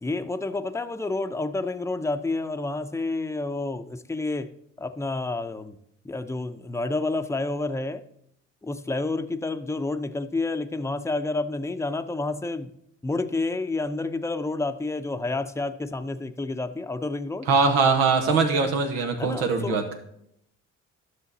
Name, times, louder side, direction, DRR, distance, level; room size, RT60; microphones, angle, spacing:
voice 1, 0.0-4.5 4.8-5.8 6.0-8.0 8.6-12.7 13.0-17.5 19.2-20.0, left 2 dB, 10° left, 9 dB, 0.7 m, -29 dB
voice 2, 17.5-20.0, right 4 dB, 85° right, 4 dB, 1.3 m, -22 dB
11.5 x 6.4 x 4.1 m, 0.75 s
hypercardioid pair, 50°, 35 cm